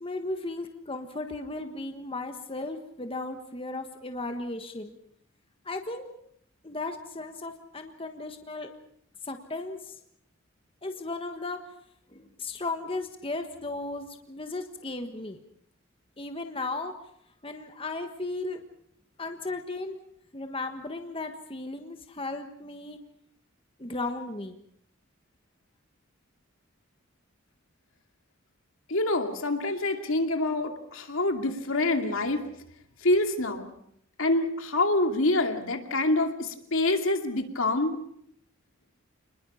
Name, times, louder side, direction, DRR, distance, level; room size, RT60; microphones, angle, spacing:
voice 1, 0.0-4.9 5.6-6.1 6.6-8.7 9.2-10.0 10.8-11.6 12.1-15.4 16.2-16.9 17.4-18.6 19.2-20.0 20.3-23.0 23.8-24.6, left 2 dB, 25° left, 6 dB, 1.4 m, -35 dB
voice 2, 28.9-32.5 33.0-33.7 34.2-38.0, left 2 dB, 75° left, 5 dB, 2.6 m, -26 dB
29.0 x 20.5 x 5.7 m, 0.70 s
head